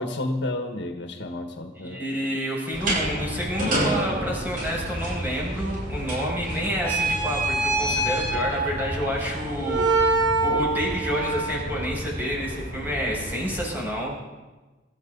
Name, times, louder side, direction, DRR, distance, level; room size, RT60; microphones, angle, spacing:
voice 1, 0.0-2.1, left 1 dB, 65° left, 4 dB, 1.5 m, -31 dB
voice 2, 1.7-14.1, equal, 10° right, -4 dB, 6.3 m, -29 dB
sound 1, 2.7-13.6, right 2 dB, 50° right, 7.3 m, -27 dB
25.0 x 13.5 x 4.0 m, 1.2 s
head